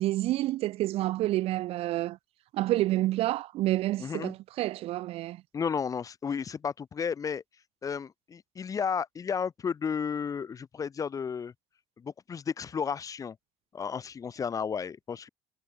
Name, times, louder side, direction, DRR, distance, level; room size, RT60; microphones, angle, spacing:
voice 1, 0.0-2.2 2.5-5.4, right 16 dB, 65° right, 0.8 m, -28 dB
voice 2, 4.0-4.3 5.5-7.4 7.8-11.5 12.0-13.4 13.7-15.3, left 6 dB, 30° left, 4.2 m, -33 dB
cardioid pair, 125°, 11 cm